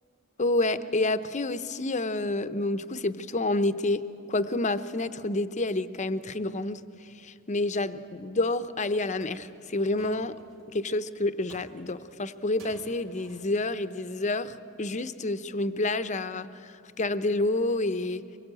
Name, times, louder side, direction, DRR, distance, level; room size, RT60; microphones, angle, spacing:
voice 1, 0.4-10.3 10.7-18.2, left 2 dB, 35° left, 11 dB, 0.8 m, -29 dB
sound 1, 8.7-8.8 9.2-10.7 11.5-12.2 12.6-13.7 13.9-14.1, right 2 dB, 70° right, 3.3 m, -53 dB
24.0 x 21.0 x 8.9 m, 2.6 s
head